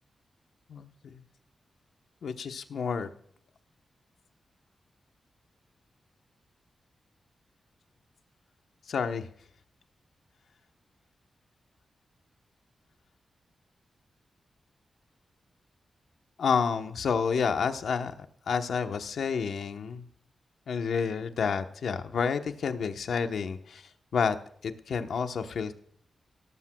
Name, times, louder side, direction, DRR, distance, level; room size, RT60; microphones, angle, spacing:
voice 1, 0.7-1.2 2.2-3.1 8.9-9.3 16.4-18.1 18.5-20.1 20.7-24.4 24.6-25.7, left 6 dB, 85° left, 7 dB, 1.0 m, -29 dB
18.0 x 13.5 x 2.3 m, 0.64 s
wide cardioid pair, 130°, 0 cm